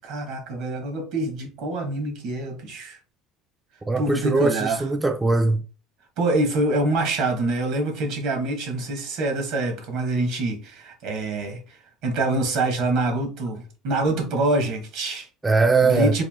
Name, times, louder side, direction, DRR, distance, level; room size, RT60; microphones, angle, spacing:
voice 1, 0.0-3.0 4.0-4.9 6.2-15.3 15.8-16.2, right 2 dB, 70° right, 1.5 m, -25 dB
voice 2, 3.9-5.6 15.4-16.2, right 3 dB, 15° right, 0.3 m, -20 dB
3.6 x 2.7 x 3.6 m
supercardioid pair, 120°, 0 cm